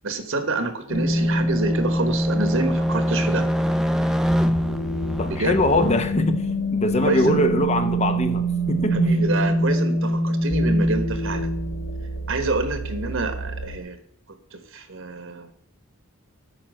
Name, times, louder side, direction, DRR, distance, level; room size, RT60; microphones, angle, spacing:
voice 1, 0.0-3.5 5.3-5.8 7.0-7.4 8.9-11.5 12.3-14.0 14.5-15.5, right 3 dB, 60° right, 9 dB, 1.4 m, -27 dB
sound 1, 0.9-13.8, equal, 65° left, 1.6 m, -24 dB
sound 2, 0.9-6.0, equal, ahead, 0.6 m, -31 dB
voice 2, 5.2-6.4 6.7-9.0, left 1 dB, 30° left, 9 dB, 0.8 m, -22 dB
8.7 x 6.1 x 7.6 m, 0.69 s
head